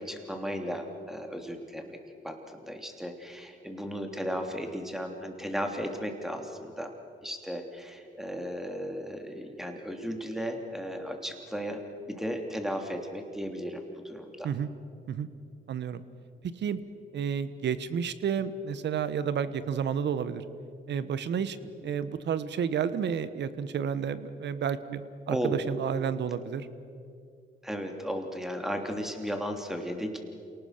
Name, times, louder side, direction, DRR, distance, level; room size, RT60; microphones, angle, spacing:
voice 1, 0.0-2.0 2.2-6.9 7.2-11.8 12.1-14.5 25.3-25.7 27.6-30.2, equal, ahead, 4 dB, 3.2 m, -35 dB
voice 2, 15.7-16.0 16.6-16.8 17.1-20.4 20.9-21.6 21.8-25.0 25.3-26.7, right 7 dB, 60° right, 14 dB, 1.3 m, -31 dB
28.0 x 18.5 x 6.7 m, 2.4 s
cardioid pair, 90°, 20 cm